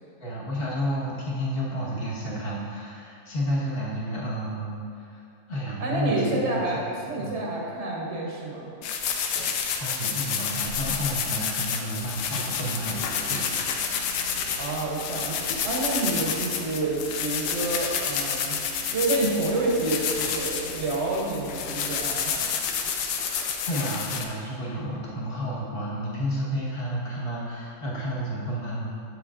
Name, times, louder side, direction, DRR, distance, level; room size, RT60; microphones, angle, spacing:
voice 1, 0.2-5.2 5.5-6.6 7.2-7.4 9.8-13.4 23.7-29.0, equal, 35° left, -6 dB, 1.4 m, -31 dB
voice 2, 5.8-8.7 14.6-18.6 18.9-22.6, right 2 dB, 50° right, -3 dB, 1.0 m, -28 dB
sound 1, 8.8-24.2, left 6 dB, 90° left, 1.2 m, -29 dB
sound 2, 12.0-22.3, right 2 dB, 65° left, 1.1 m, -45 dB
7.6 x 7.0 x 2.4 m, 2.6 s
omnidirectional pair, 1.8 m